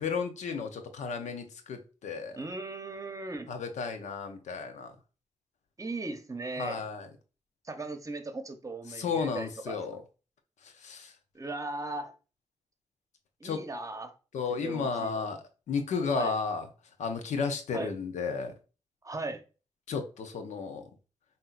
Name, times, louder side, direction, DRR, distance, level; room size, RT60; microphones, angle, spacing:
voice 1, 0.0-2.4 3.5-4.9 6.6-7.1 8.9-10.0 10.6-11.1 13.4-13.6 14.3-15.4 15.7-16.7 17.0-18.5 19.9-20.9, left 5 dB, 75° left, 0.7 m, -33 dB
voice 2, 2.4-3.5 5.8-6.8 7.6-9.8 11.3-12.1 13.4-14.1 14.5-15.3 16.1-16.3 17.7-17.9 19.0-19.4, right 2 dB, 25° right, 0.9 m, -38 dB
5.5 x 2.7 x 2.5 m
supercardioid pair, 45°, 12 cm